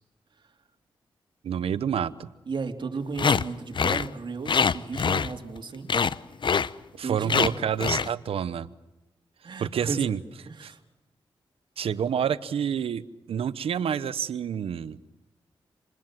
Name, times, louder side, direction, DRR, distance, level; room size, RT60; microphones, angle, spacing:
voice 1, 1.4-2.3 7.0-8.7 9.6-10.2 10.6-10.7 11.8-15.0, right 8 dB, 85° right, 16 dB, 0.9 m, -28 dB
voice 2, 2.5-5.9 7.0-7.5 9.4-10.2 10.4-10.8, right 4 dB, 55° right, 3 dB, 3.5 m, -34 dB
sound 1, 3.2-3.4 3.7-4.1 4.5-5.6 5.9-6.2 6.4-6.7 7.3-7.5 7.8-8.1, left 6 dB, 55° left, 0.8 m, -23 dB
27.5 x 20.5 x 7.6 m, 1.0 s
cardioid pair, 60°, 10 cm